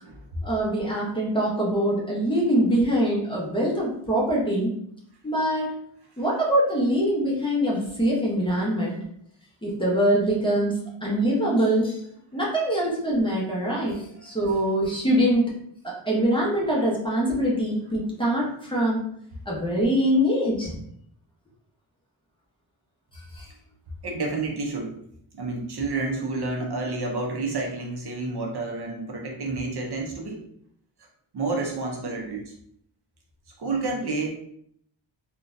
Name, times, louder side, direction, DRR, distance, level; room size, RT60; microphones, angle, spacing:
voice 1, 0.4-4.7 5.2-5.7 6.2-9.0 9.6-12.0 12.3-15.5 15.8-19.0 19.5-20.7 23.1-23.5, equal, 10° left, -5 dB, 0.8 m, -24 dB
voice 2, 13.6-14.4 24.0-25.0 25.3-30.4 31.3-32.5 33.6-34.3, right 3 dB, 60° right, 1 dB, 0.7 m, -30 dB
3.8 x 2.3 x 2.6 m, 0.69 s
wide cardioid pair, 145°, 45 cm